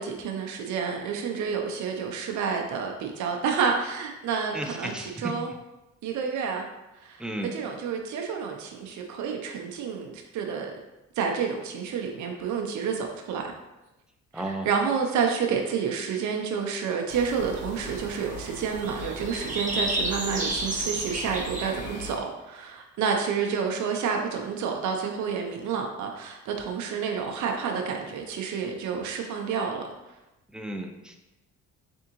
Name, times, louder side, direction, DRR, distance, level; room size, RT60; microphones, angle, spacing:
voice 1, 0.0-5.5 6.0-6.6 7.0-10.7 11.2-13.5 14.3-29.8, right 6 dB, 70° right, 2 dB, 0.6 m, -29 dB
voice 2, 4.5-5.3 7.2-7.5 14.3-14.7 30.5-31.2, right 1 dB, 5° right, 3 dB, 0.4 m, -34 dB
sound 1, 17.1-22.2, right 1 dB, 25° right, 1.1 m, -32 dB
3.6 x 3.5 x 2.9 m, 1.0 s
cardioid pair, 90°, 30 cm